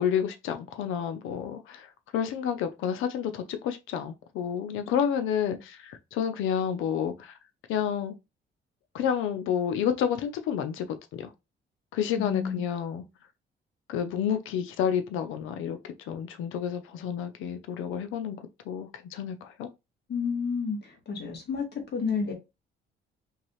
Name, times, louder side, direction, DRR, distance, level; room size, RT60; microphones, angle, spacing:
voice 1, 0.0-1.9 2.1-7.3 7.7-8.1 8.9-10.9 11.1-11.3 11.9-13.0 13.9-18.4 18.7-19.7, left 8 dB, 90° left, 0.6 m, -30 dB
voice 2, 12.2-12.6 20.1-22.3, left 5 dB, 55° left, 1.9 m, -30 dB
4.7 x 2.7 x 3.0 m
cardioid pair, 90°, 20 cm